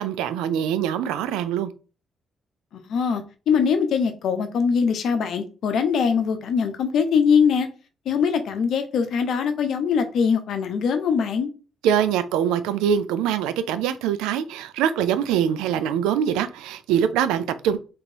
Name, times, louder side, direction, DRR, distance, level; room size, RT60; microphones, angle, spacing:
voice 1, 0.0-1.7 11.8-17.8, right 9 dB, 70° right, 0.3 m, -23 dB
voice 2, 2.7-7.7 8.1-11.5, left 6 dB, 60° left, 0.6 m, -22 dB
3.6 x 2.9 x 2.9 m
hypercardioid pair, 40°, 0 cm